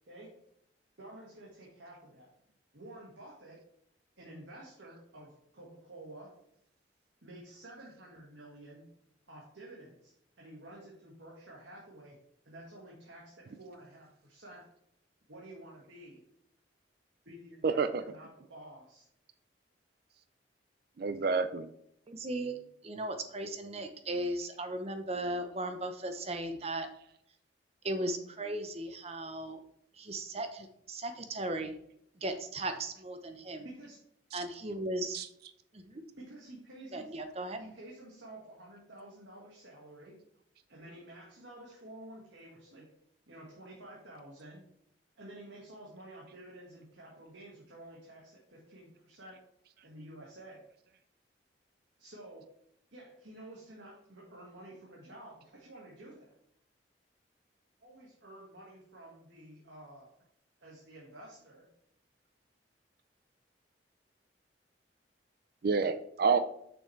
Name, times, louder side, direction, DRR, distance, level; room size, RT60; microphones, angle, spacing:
voice 1, 1.0-2.3 2.7-3.6 4.2-6.3 7.2-8.9 9.3-12.2 12.4-14.7 15.3-16.3 17.2-19.0 33.6-34.0 36.2-37.2 37.6-40.2 40.7-42.9 43.3-44.7 45.2-49.4 49.8-50.7 52.0-52.5 52.9-56.3 57.8-60.1 60.6-61.7, right 1 dB, 80° right, -4 dB, 1.7 m, -51 dB
voice 2, 17.6-18.2 21.0-21.7 34.3-34.5 35.1-35.3 65.6-66.4, right 5 dB, 55° right, 11 dB, 0.4 m, -29 dB
voice 3, 22.1-22.6 22.8-26.9 27.8-29.6 30.0-31.7 32.2-33.7 34.3-35.2 35.7-36.0 36.9-37.6, right 1 dB, 35° right, 7 dB, 0.7 m, -37 dB
6.6 x 6.1 x 3.2 m, 0.72 s
head